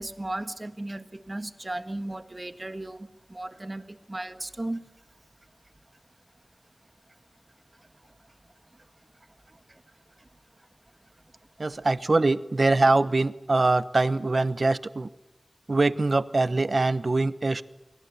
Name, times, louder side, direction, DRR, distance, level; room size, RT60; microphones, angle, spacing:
voice 1, 0.0-4.8 7.8-8.1 8.7-8.8 9.5-9.8 10.2-10.3, right 1 dB, 35° right, 10 dB, 1.5 m, -36 dB
voice 2, 11.6-15.1 15.7-17.6, right 3 dB, 60° right, 14 dB, 1.0 m, -23 dB
28.5 x 23.0 x 6.9 m, 0.94 s
wide cardioid pair, 65°, 0 cm